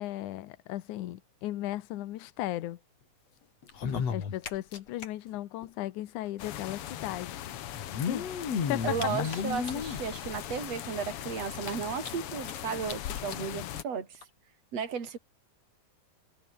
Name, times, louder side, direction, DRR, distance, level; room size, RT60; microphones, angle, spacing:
voice 1, 0.0-2.8 4.1-7.4 8.0-8.3 8.7-9.3, left 15 dB, 70° left, 2.3 m, -36 dB
sound 1, 3.6-5.1 5.3-5.4 5.6-5.7 6.8-6.9 7.7-10.0 10.6-10.7 11.1-11.2 11.6-12.5 12.9-13.0 13.3-13.4 14.2-14.3, left 6 dB, 50° left, 3.7 m, -33 dB
sound 2, 6.4-13.8, left 12 dB, 85° left, 1.2 m, -39 dB
voice 2, 8.8-14.2 14.7-15.2, right 6 dB, 45° right, 4.8 m, -34 dB
omnidirectional pair, 4.1 m